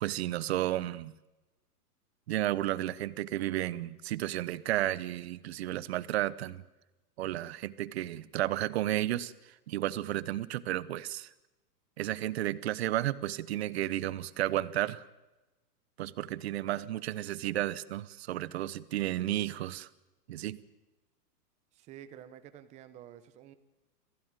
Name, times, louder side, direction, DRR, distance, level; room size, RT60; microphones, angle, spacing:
voice 1, 0.0-1.1 2.3-6.6 7.2-11.3 12.0-15.0 16.0-19.9 20.3-20.6, right 14 dB, 40° right, 17 dB, 0.9 m, -32 dB
voice 2, 21.7-23.5, right 10 dB, 15° right, 11 dB, 0.9 m, -50 dB
26.5 x 16.0 x 9.0 m, 1.1 s
hypercardioid pair, 160°, 48 cm